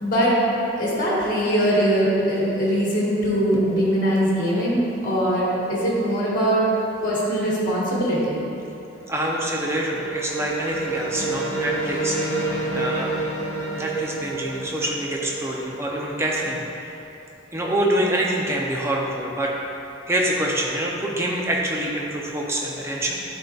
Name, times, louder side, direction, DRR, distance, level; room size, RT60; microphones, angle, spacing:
voice 1, 0.0-0.4 0.8-6.6 7.0-8.4, equal, 40° left, -7 dB, 1.4 m, -21 dB
voice 2, 3.5-3.9 9.1-13.1 13.7-17.1 17.5-19.8 20.1-23.1, right 1 dB, 15° right, -2 dB, 0.5 m, -26 dB
sound 1, 8.8-16.4, right 2 dB, 15° left, 1.2 m, -29 dB
10.0 x 4.0 x 2.4 m, 2.9 s
head